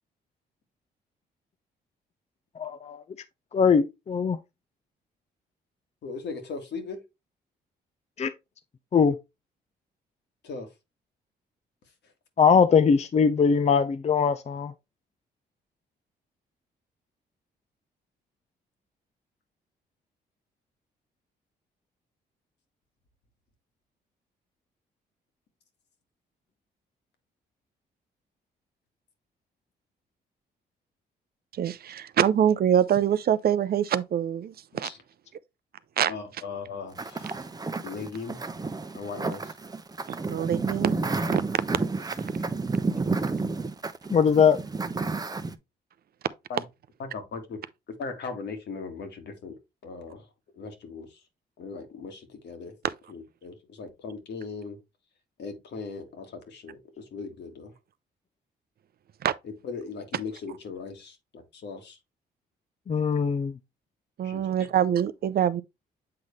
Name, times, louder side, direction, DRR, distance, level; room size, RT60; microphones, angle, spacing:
voice 1, 2.6-3.0 3.5-4.4 8.2-8.3 8.9-9.2 12.4-14.7 44.1-44.6 62.9-63.5, left 6 dB, 35° left, 0.6 m, -21 dB
voice 2, 6.0-7.0 10.4-10.7 34.8-35.0 36.1-37.5 37.8-38.4 38.9-39.6 41.8-41.9 46.5-46.6 47.0-47.6 48.0-50.3 50.6-51.2 51.6-52.7 53.1-54.8 55.4-57.7 59.4-62.0 64.2-64.5, left 4 dB, 70° left, 1.8 m, -38 dB
voice 3, 31.5-34.9 36.0-36.1 40.3-41.0 41.3-41.4 52.8-52.9 59.2-59.3 64.2-65.6, right 9 dB, 55° right, 0.5 m, -24 dB
sound 1, 37.0-45.6, right 3 dB, 20° right, 0.7 m, -30 dB
7.6 x 4.0 x 3.2 m
supercardioid pair, 65°, 18 cm